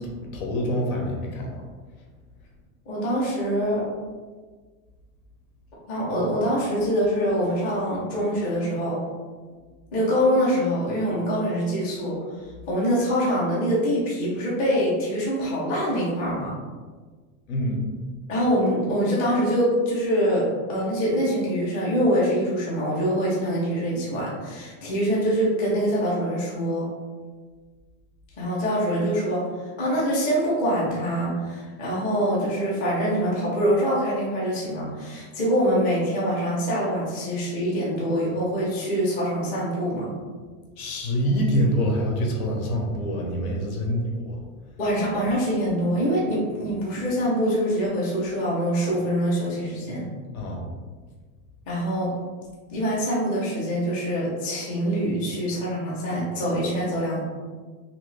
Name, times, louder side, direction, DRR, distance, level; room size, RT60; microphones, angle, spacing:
voice 1, 0.0-1.6 17.5-17.9 40.8-44.4 50.3-50.6, equal, 85° left, 0 dB, 1.0 m, -26 dB
voice 2, 2.9-3.8 5.9-9.0 9.9-12.2 12.7-16.5 18.3-20.4 20.7-26.9 28.4-29.4 29.8-40.1 44.8-50.1 51.7-52.1 52.7-57.2, equal, 20° left, -6 dB, 0.6 m, -24 dB
2.9 x 2.7 x 3.2 m, 1.4 s
supercardioid pair, 180°, 42 cm